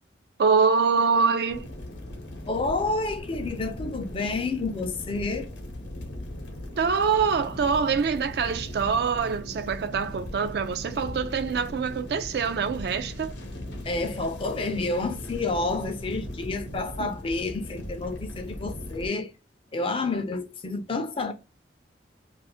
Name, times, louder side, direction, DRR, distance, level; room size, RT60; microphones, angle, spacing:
voice 1, 0.4-1.7 6.8-13.3 17.0-17.1, right 5 dB, 60° right, 0.3 m, -24 dB
sound 1, 1.5-19.1, left 1 dB, 75° left, 0.8 m, -39 dB
voice 2, 2.5-5.5 13.8-19.3 19.7-21.3, left 3 dB, 30° left, 0.4 m, -29 dB
Organ, 6.5-17.2, right 2 dB, 75° right, 0.9 m, -46 dB
2.4 x 2.4 x 3.5 m
head